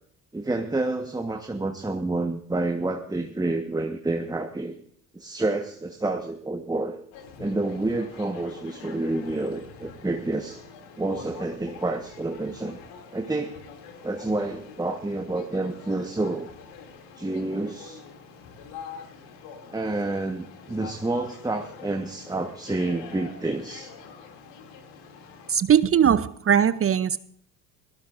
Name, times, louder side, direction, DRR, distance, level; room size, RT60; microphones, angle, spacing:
voice 1, 0.3-4.7 5.1-7.0 7.4-10.6 11.0-12.8 13.1-13.6 14.0-16.5 17.2-18.0 19.7-23.9, right 2 dB, 10° right, 5 dB, 1.4 m, -29 dB
sound 1, 7.1-25.5, left 6 dB, 65° left, 2.9 m, -45 dB
voice 2, 25.5-27.2, right 8 dB, 30° right, 16 dB, 0.7 m, -20 dB
23.5 x 17.5 x 2.6 m, 0.64 s
hypercardioid pair, 60°, 47 cm